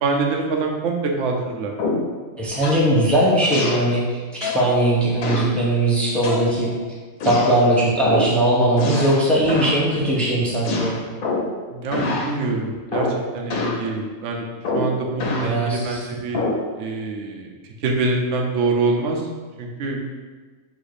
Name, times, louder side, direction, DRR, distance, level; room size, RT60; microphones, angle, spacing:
voice 1, 0.0-1.7 11.7-13.1 13.3-14.5 14.7-16.4 16.7-17.6 17.8-19.3 19.6-20.0, right 3 dB, 60° right, 1 dB, 0.9 m, -25 dB
sound 1, 1.8-2.2 2.6-2.9 3.5-3.9 4.4-4.7 5.2-5.6 6.2-6.8 7.2-7.6 8.1-8.4 8.8-9.2 9.5-9.8 10.6-11.6 11.9-12.3 12.9-13.2 13.5-13.8 14.6-15.5 16.3-16.7, left 3 dB, 90° left, 1.2 m, -25 dB
voice 2, 2.4-6.7 7.2-11.0 15.4-16.0, right 1 dB, ahead, -5 dB, 0.7 m, -19 dB
4.1 x 2.6 x 4.8 m, 1.4 s
omnidirectional pair, 1.5 m